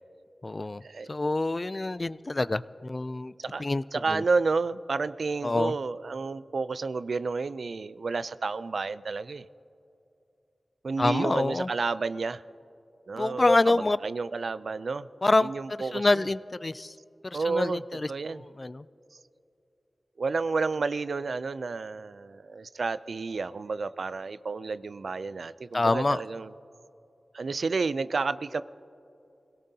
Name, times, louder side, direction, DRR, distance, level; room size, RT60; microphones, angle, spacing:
voice 1, 0.4-0.8 1.1-3.3 3.6-4.2 5.4-5.7 11.0-11.7 13.2-14.0 15.2-15.5 15.8-17.0 17.2-18.8 25.7-26.2, left 2 dB, 35° left, 17 dB, 0.3 m, -26 dB
voice 2, 3.9-9.4 10.8-12.4 13.1-13.5 14.0-15.1 15.4-16.1 17.3-17.8 18.1-18.4 20.2-26.5 27.3-28.6, right 4 dB, 75° right, 15 dB, 0.3 m, -30 dB
26.0 x 17.5 x 2.8 m, 2.7 s
wide cardioid pair, 90°, 0 cm